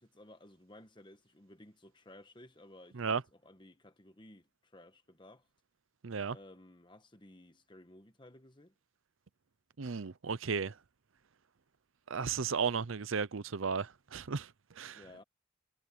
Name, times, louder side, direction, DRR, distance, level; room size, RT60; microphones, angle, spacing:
voice 1, 0.0-5.5 6.3-8.7 14.9-15.2, left 1 dB, 20° left, 1.4 m, -56 dB
voice 2, 6.0-6.4 9.8-10.8 12.1-15.0, right 5 dB, 70° right, 0.6 m, -35 dB
head